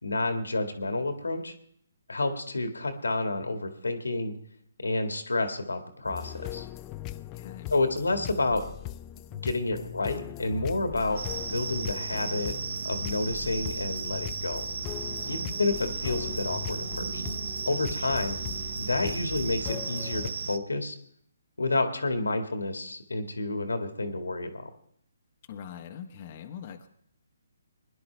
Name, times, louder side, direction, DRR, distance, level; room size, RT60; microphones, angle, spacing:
voice 1, 0.0-1.5 2.1-4.4 4.8-6.7 7.7-8.6 9.3-11.2 11.5-12.5 12.8-14.7 15.2-17.2 17.7-18.4 18.8-21.0 21.6-24.7, left 2 dB, 85° left, 6 dB, 1.8 m, -29 dB
sound 1, 6.1-20.3, left 14 dB, 25° left, 0.4 m, -40 dB
voice 2, 7.2-7.7 18.1-18.3 25.5-26.9, left 8 dB, 40° left, 3 dB, 1.1 m, -43 dB
sound 2, 11.2-20.6, right 5 dB, 70° right, 0.7 m, -35 dB
21.5 x 11.0 x 3.4 m, 0.67 s
figure-of-eight pair, 145°, 0 cm